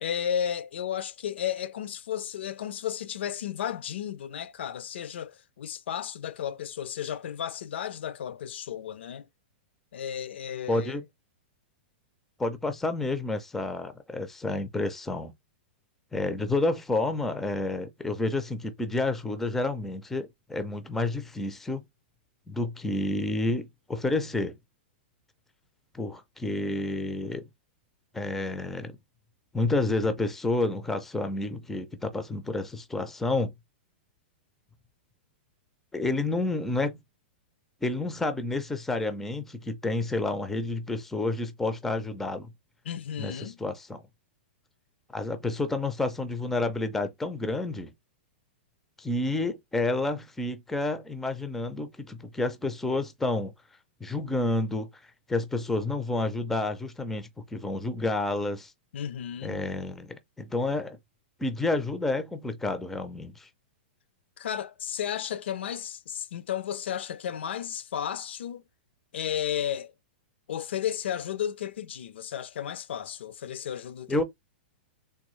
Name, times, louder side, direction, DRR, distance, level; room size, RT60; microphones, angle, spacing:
voice 1, 0.0-9.3 9.9-11.0 42.9-43.6 58.9-59.6 64.4-68.6 69.1-69.9 70.5-74.2, left 9 dB, 80° left, 0.5 m, -33 dB
voice 2, 10.7-11.0 12.4-15.3 16.1-21.8 22.5-24.6 25.9-27.5 28.1-29.0 29.5-33.5 35.9-37.0 37.8-42.5 43.2-44.0 45.1-47.9 49.0-53.5 54.0-54.9 55.3-58.7 59.4-61.0 61.4-63.5 74.1-74.2, left 2 dB, 5° left, 0.4 m, -29 dB
3.6 x 2.2 x 3.0 m
hypercardioid pair, 155°, 6 cm